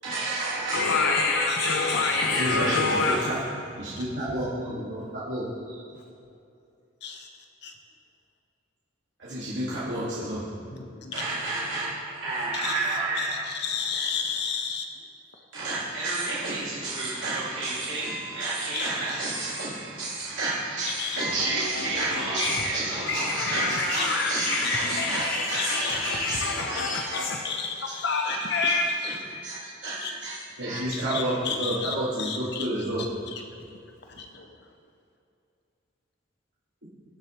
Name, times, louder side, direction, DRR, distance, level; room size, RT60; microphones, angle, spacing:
voice 1, 0.0-0.8 2.3-3.4 3.8-5.8 9.2-10.4 11.1-13.4 15.5-26.8 27.1-27.3 28.2-28.4 28.6-28.8 29.0-33.1, right 2 dB, 70° right, -9 dB, 2.0 m, -30 dB
voice 2, 0.7-3.2 21.2-22.7 23.0-27.4 28.0-28.8, left 3 dB, 85° left, 1 dB, 0.8 m, -27 dB
voice 3, 1.5-2.2 7.0-7.3 7.6-7.7 10.7-11.1 12.6-12.7 13.2-14.8 18.7-19.3 20.8-21.2 22.4-22.5 24.0-24.1 25.5-26.3 27.1-29.1 30.0-30.1 30.9-32.7 34.2-34.5, left 6 dB, 60° left, 3 dB, 1.0 m, -33 dB
18.5 x 6.8 x 3.1 m, 2.6 s
head